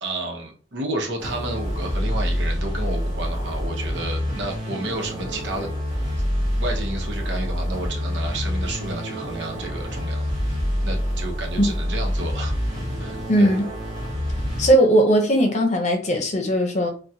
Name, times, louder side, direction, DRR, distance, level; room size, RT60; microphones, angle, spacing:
voice 1, 0.0-5.7 6.6-10.3 10.8-12.5 13.0-13.6, right 2 dB, 80° right, 0.8 m, -31 dB
sound 1, 1.2-14.7, equal, 45° right, 1.5 m, -27 dB
voice 2, 13.3-13.6 14.6-16.9, right 1 dB, 40° left, 0.8 m, -18 dB
3.5 x 2.3 x 2.8 m
head